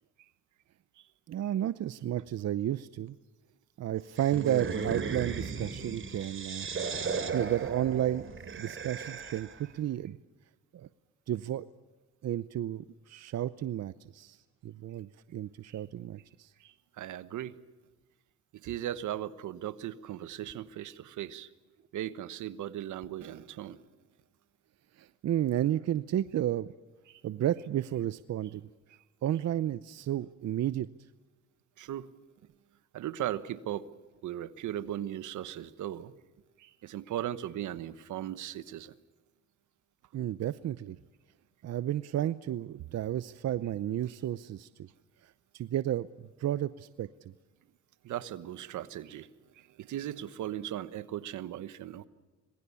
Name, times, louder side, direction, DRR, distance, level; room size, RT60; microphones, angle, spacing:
voice 1, 1.3-3.2 3.8-6.7 7.3-8.2 8.6-10.2 10.7-10.9 11.3-11.7 12.2-14.4 14.6-16.5 25.0-26.7 27.2-28.6 29.2-30.9 40.1-41.0 41.6-44.9 45.2-46.1 46.4-47.1, right 12 dB, 60° right, 15 dB, 0.7 m, -32 dB
sound 1, 4.2-9.6, right 5 dB, 45° right, 2.8 m, -36 dB
voice 2, 16.6-17.6 18.6-21.5 21.9-23.8 27.1-27.2 31.8-32.1 32.9-33.9 34.2-36.1 36.6-38.9 48.0-49.3 49.6-52.1, right 12 dB, 80° right, 15 dB, 1.2 m, -38 dB
26.0 x 20.5 x 7.0 m, 1.2 s
cardioid pair, 90°, 30 cm